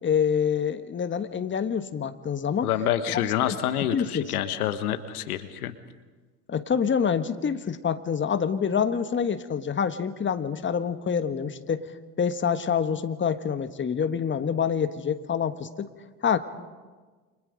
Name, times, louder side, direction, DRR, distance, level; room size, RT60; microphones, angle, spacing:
voice 1, 0.0-2.7 3.1-3.2 3.5-3.6 3.9-4.3 6.5-11.9 12.2-15.9 16.2-16.4, left 7 dB, 25° left, 10 dB, 1.5 m, -26 dB
voice 2, 2.6-5.7, left 11 dB, 80° left, 10 dB, 1.4 m, -27 dB
29.0 x 26.0 x 5.2 m, 1.4 s
hypercardioid pair, 70°, 44 cm